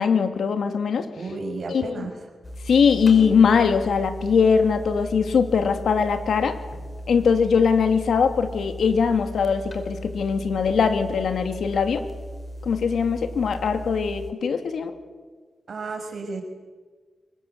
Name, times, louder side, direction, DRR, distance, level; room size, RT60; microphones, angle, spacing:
voice 1, 0.0-1.0 1.7-2.1 2.7-6.6 7.1-12.0 12.6-14.9, left 6 dB, 85° left, 8 dB, 2.7 m, -21 dB
voice 2, 1.1-2.1 15.7-16.4, right 3 dB, 60° right, 4 dB, 6.0 m, -32 dB
sound 1, 2.4-14.3, equal, 35° left, 4.9 m, -37 dB
25.0 x 22.5 x 8.2 m, 1.5 s
cardioid pair, 80°, 0 cm